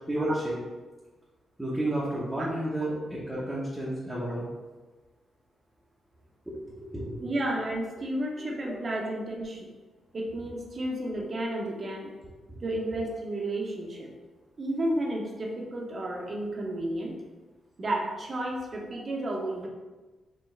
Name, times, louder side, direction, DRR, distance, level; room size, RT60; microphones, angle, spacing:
voice 1, 0.1-0.6 1.6-4.5 6.5-7.3 8.6-8.7 12.5-12.6, right 1 dB, 5° right, -7 dB, 0.9 m, -31 dB
voice 2, 7.2-9.7 10.1-12.1 12.6-14.1 14.6-17.1 17.8-19.7, right 1 dB, 35° right, 0 dB, 0.8 m, -32 dB
4.6 x 3.4 x 3.3 m, 1.3 s
cardioid pair, 140°, 0 cm